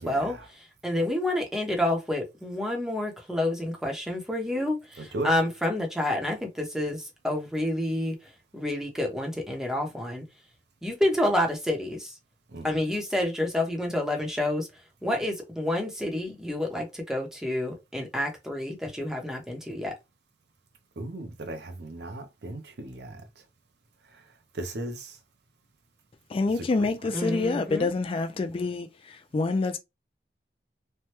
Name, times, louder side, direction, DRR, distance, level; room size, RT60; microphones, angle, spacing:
voice 1, 0.0-0.5 5.0-5.3 12.5-12.7 21.0-23.2 24.1-24.2 24.5-25.2 26.6-26.9, right 1 dB, 65° right, 0.6 m, -37 dB
voice 2, 0.8-8.1 8.5-10.2 10.8-12.1 12.6-14.7 15.0-19.9 27.1-27.9, left 1 dB, 5° right, 0.8 m, -28 dB
voice 3, 26.3-29.8, left 3 dB, 30° left, 0.3 m, -27 dB
3.2 x 2.2 x 2.9 m
head